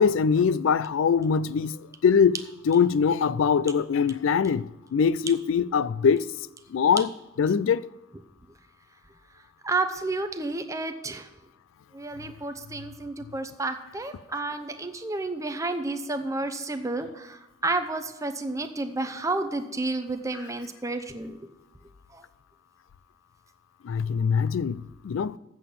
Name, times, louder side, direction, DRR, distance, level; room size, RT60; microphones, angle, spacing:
voice 1, 0.0-6.3 6.7-7.1 7.4-7.8 20.3-20.5 23.8-25.4, left 6 dB, 70° left, 0.4 m, -23 dB
voice 2, 9.6-11.3 11.9-21.4, right 2 dB, 15° right, 0.7 m, -31 dB
7.7 x 7.1 x 8.4 m
head